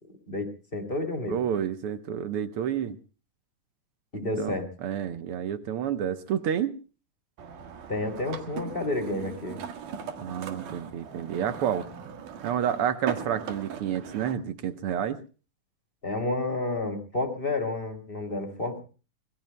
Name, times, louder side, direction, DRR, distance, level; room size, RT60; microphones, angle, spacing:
voice 1, 0.3-1.4 4.1-4.7 7.9-9.6 16.0-18.8, left 2 dB, 20° left, 5 dB, 2.6 m, -30 dB
voice 2, 1.3-3.0 4.4-6.7 10.2-11.9 12.4-15.2, right 9 dB, 65° right, 11 dB, 1.4 m, -29 dB
sound 1, 7.4-14.3, right 7 dB, 85° right, 3.3 m, -39 dB
24.5 x 22.0 x 2.2 m, 0.37 s
omnidirectional pair, 3.6 m